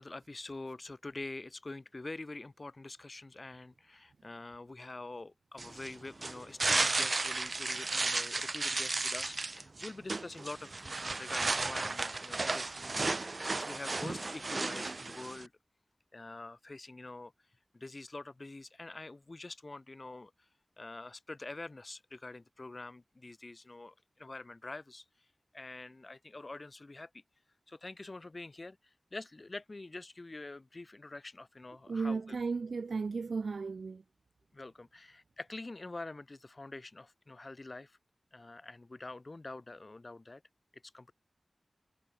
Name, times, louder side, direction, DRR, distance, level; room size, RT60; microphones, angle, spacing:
voice 1, 0.0-15.5 16.1-17.3 17.7-20.3 20.8-25.0 25.5-27.1 27.7-32.4 34.5-38.0 38.3-40.4 40.7-41.1, left 2 dB, 50° left, 1.6 m, -46 dB
sound 1, 5.6-15.5, right 3 dB, 55° right, 2.0 m, -34 dB
voice 2, 31.9-34.0, right 4 dB, 85° right, 0.4 m, -35 dB
cardioid pair, 45°, 0 cm